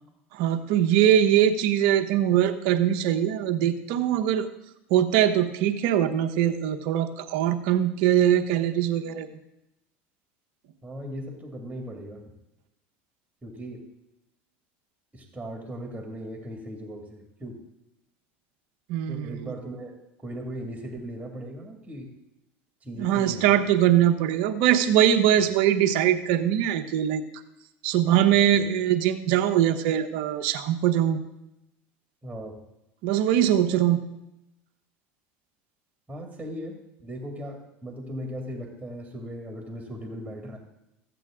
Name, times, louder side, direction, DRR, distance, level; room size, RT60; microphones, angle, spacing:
voice 1, 0.3-4.5 4.9-9.3 18.9-19.3 23.0-27.2 27.8-31.2 33.0-34.0, right 10 dB, 70° right, 7 dB, 1.0 m, -22 dB
voice 2, 10.8-12.3 13.4-13.8 15.1-17.6 19.0-22.1 22.8-23.5 28.3-28.6 32.2-32.6 36.1-40.6, equal, 15° right, 1 dB, 2.2 m, -38 dB
14.5 x 8.2 x 3.7 m, 0.89 s
supercardioid pair, 95°, 6 cm